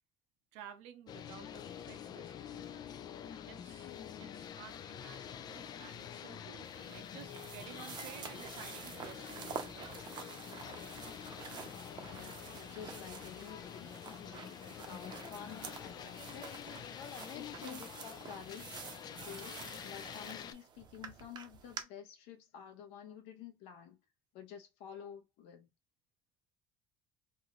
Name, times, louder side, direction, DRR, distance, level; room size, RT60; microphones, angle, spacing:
voice 1, 0.5-2.9 3.5-10.3, right 9 dB, 90° right, 0.6 m, -54 dB
sound 1, 1.1-20.5, left 9 dB, 45° left, 0.3 m, -47 dB
sound 2, 6.6-21.8, right 7 dB, 45° right, 0.7 m, -49 dB
voice 2, 12.0-16.8 17.3-18.9 19.2-24.0 24.3-25.7, left 8 dB, 85° left, 0.9 m, -51 dB
2.7 x 2.5 x 2.9 m
cardioid pair, 110°, 10 cm